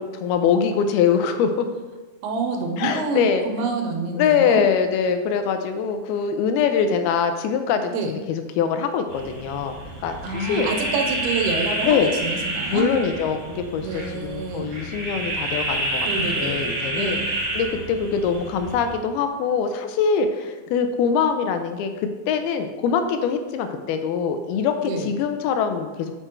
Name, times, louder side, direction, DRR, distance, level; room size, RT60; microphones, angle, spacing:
voice 1, 0.0-1.7 2.8-3.4 4.2-9.7 10.0-10.7 11.8-12.1 12.7-17.2 17.5-21.9 22.3-26.1, left 6 dB, 85° left, 7 dB, 2.6 m, -23 dB
voice 2, 2.2-4.6 7.9-8.1 10.2-12.9 13.8-14.7 16.1-17.3 24.8-25.1, right 3 dB, 90° right, 3 dB, 2.8 m, -27 dB
sound 1, 9.1-18.9, right 1 dB, 40° right, 1.5 m, -29 dB
6.8 x 6.0 x 4.4 m, 1.2 s
omnidirectional pair, 4.4 m